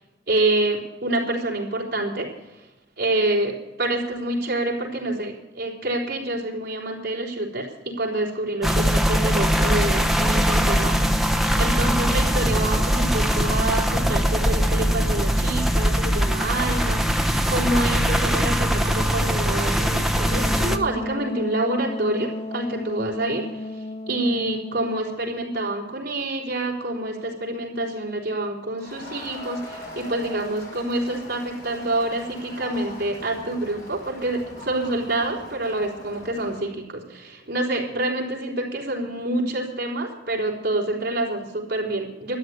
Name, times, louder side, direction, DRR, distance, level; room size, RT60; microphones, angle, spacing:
voice 1, 0.3-2.3 3.0-11.0 11.6-23.7 24.1-42.4, right 2 dB, 60° right, -1 dB, 3.8 m, -27 dB
sound 1, 8.6-20.8, equal, ahead, 0.9 m, -21 dB
Wind instrument woodwind instrument, 20.2-25.1, left 2 dB, 35° left, 0.5 m, -33 dB
Crowd, 28.8-36.7, left 1 dB, 55° left, 5.6 m, -41 dB
13.0 x 10.5 x 9.4 m, 1.0 s
head